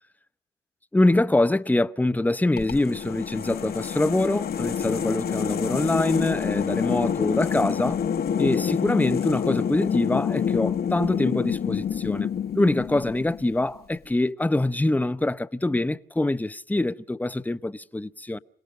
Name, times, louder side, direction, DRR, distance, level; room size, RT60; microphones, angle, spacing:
voice 1, 0.9-8.0 8.4-12.3 12.5-18.4, left 2 dB, 10° left, 0.8 m, -24 dB
sound 1, 2.6-13.6, left 8 dB, 50° left, 1.2 m, -27 dB
27.5 x 18.0 x 6.3 m
cardioid pair, 90°, 20 cm